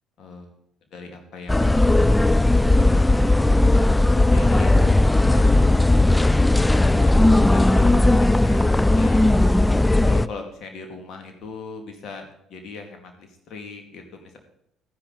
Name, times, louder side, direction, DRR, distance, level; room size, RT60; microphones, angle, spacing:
voice 1, 0.2-0.5 0.9-1.9 4.1-4.8 5.3-6.0 6.7-9.3 10.0-14.4, left 4 dB, 50° left, 5 dB, 2.3 m, -39 dB
sound 1, 1.5-10.3, left 2 dB, 10° left, 0.4 m, -17 dB
13.5 x 10.0 x 4.1 m, 0.75 s
figure-of-eight pair, 50°, 0 cm